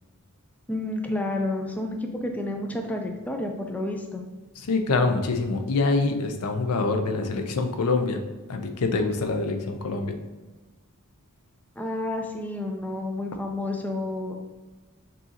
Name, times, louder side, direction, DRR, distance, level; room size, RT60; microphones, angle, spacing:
voice 1, 0.7-4.3 11.8-14.4, left 1 dB, 5° left, 2 dB, 0.4 m, -30 dB
voice 2, 4.6-8.2 8.5-10.2, left 3 dB, 80° left, 5 dB, 0.5 m, -25 dB
6.2 x 2.7 x 2.8 m, 1.2 s
head